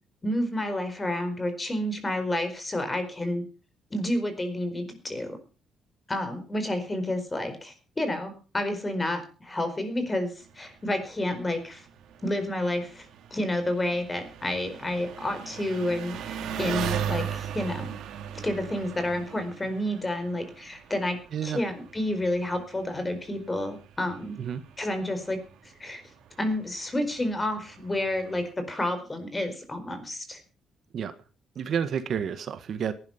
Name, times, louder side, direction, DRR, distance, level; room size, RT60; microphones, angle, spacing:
voice 1, 0.2-3.4 3.9-5.4 6.1-11.8 12.2-18.0 18.3-24.4 24.8-25.4 25.8-26.0 26.4-30.4, left 1 dB, 15° left, 9 dB, 4.5 m, -30 dB
Engine, 10.4-28.5, right 9 dB, 80° right, 2.8 m, -39 dB
voice 2, 31.5-32.9, right 8 dB, 55° right, 11 dB, 1.5 m, -30 dB
18.0 x 12.0 x 5.8 m, 0.38 s
cardioid pair, 130°, 0 cm